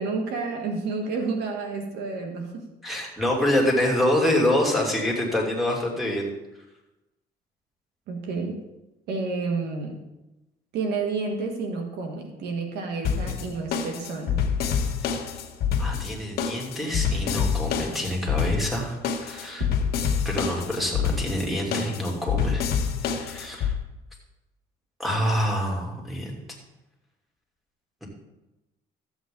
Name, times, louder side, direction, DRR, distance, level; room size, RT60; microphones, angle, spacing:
voice 1, 0.0-2.7 8.1-8.6 9.1-10.0 10.7-14.4, right 4 dB, 80° right, 3 dB, 1.8 m, -30 dB
voice 2, 2.8-6.2 15.8-19.7 20.2-22.6 23.1-23.7 25.0-26.3 28.0-28.1, left 1 dB, ahead, -2 dB, 2.9 m, -26 dB
sound 1, 13.0-23.7, left 7 dB, 70° left, 1.4 m, -27 dB
14.0 x 8.2 x 3.9 m, 0.99 s
cardioid pair, 110°, 17 cm